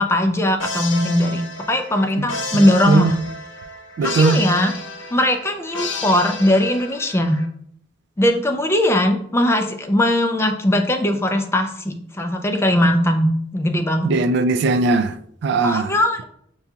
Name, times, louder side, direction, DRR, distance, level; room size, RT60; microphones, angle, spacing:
voice 1, 0.0-3.2 4.0-4.7 5.1-7.4 8.2-14.1 15.6-16.2, left 1 dB, 15° left, 0.4 m, -19 dB
sound 1, 0.6-7.5, left 3 dB, 85° left, 0.6 m, -31 dB
voice 2, 4.0-4.4 14.0-15.1 15.4-15.9, right 3 dB, 65° right, 0.3 m, -18 dB
6.7 x 2.3 x 2.7 m
head